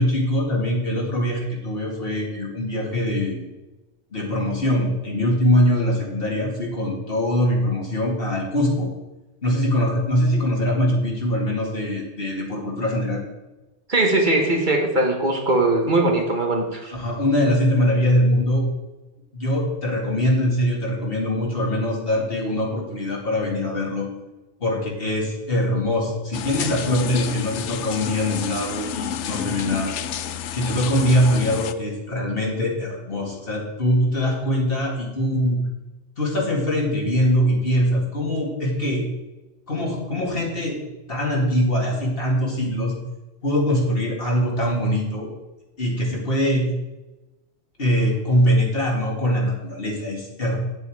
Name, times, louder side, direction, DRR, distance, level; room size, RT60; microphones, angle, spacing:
voice 1, 0.0-3.5 4.1-8.9 9.4-13.2 16.9-18.7 19.3-24.1 24.6-29.9 30.5-35.6 36.2-39.0 39.7-42.9 43.4-45.3 45.8-46.7 47.8-50.6, equal, 55° left, -2 dB, 2.4 m, -22 dB
voice 2, 13.9-16.9, right 2 dB, 45° right, 1 dB, 1.6 m, -20 dB
sound 1, 26.3-31.7, left 9 dB, 80° left, 0.9 m, -30 dB
9.7 x 7.8 x 4.7 m, 1.1 s
omnidirectional pair, 1.2 m